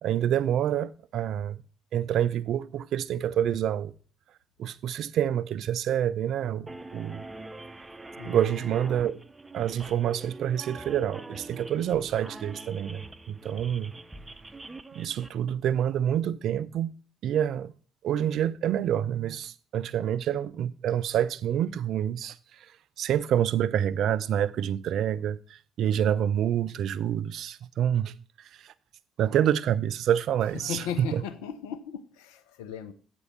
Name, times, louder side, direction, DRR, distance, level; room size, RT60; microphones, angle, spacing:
voice 1, 0.0-1.6 1.9-3.9 4.6-7.3 8.2-9.2 9.5-13.9 14.9-17.0 17.2-17.7 18.0-22.7 23.0-28.1 28.6-28.7 29.2-30.8 31.1-31.2, right 10 dB, 65° right, 0.4 m, -27 dB
sound 1, 6.7-15.3, right 2 dB, 20° right, 0.7 m, -44 dB
voice 2, 8.2-8.7 30.5-32.9, left 8 dB, 80° left, 0.6 m, -37 dB
8.2 x 4.4 x 6.6 m
hypercardioid pair, 45°, 0 cm